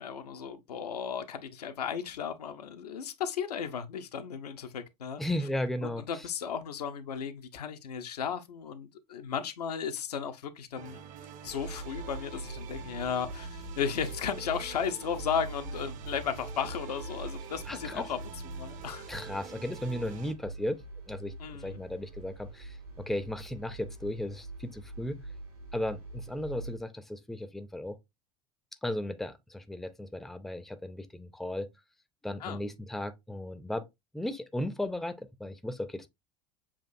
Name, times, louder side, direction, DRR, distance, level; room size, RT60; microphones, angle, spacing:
voice 1, 0.0-5.2 5.8-11.0 11.4-18.2 18.5-19.1 21.4-21.8 32.4-32.6, left 7 dB, 80° left, 0.6 m, -35 dB
voice 2, 5.2-6.0 17.7-18.1 19.1-20.8 21.1-21.3 21.6-25.2 25.7-28.0 28.8-31.7 32.2-33.9 34.1-36.1, left 1 dB, ahead, 0.5 m, -35 dB
sound 1, 10.7-20.3, right 8 dB, 40° right, 0.6 m, -47 dB
sound 2, 11.6-26.8, right 2 dB, 70° right, 1.9 m, -43 dB
7.1 x 2.5 x 2.4 m
figure-of-eight pair, 75°, 20 cm